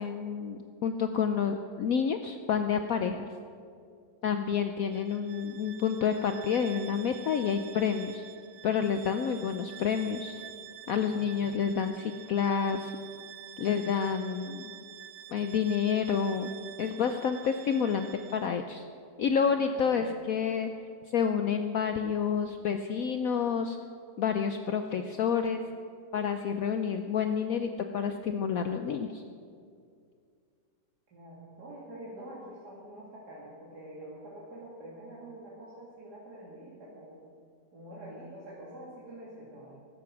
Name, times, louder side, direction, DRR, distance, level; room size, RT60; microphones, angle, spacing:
voice 1, 0.0-3.3 4.2-8.2 8.6-10.4 10.9-12.9 13.6-14.7 15.3-16.5 16.8-18.8 19.2-20.7 21.1-23.8 24.2-25.6 26.1-29.2, left 7 dB, 65° left, 7 dB, 0.9 m, -29 dB
Bowed string instrument, 4.8-18.7, right 11 dB, 80° right, 1.3 m, -48 dB
voice 2, 10.9-11.6 19.4-20.1 31.1-37.3 37.7-39.8, right 1 dB, 65° right, -6 dB, 3.0 m, -46 dB
15.5 x 12.5 x 6.0 m, 2.3 s
omnidirectional pair, 1.9 m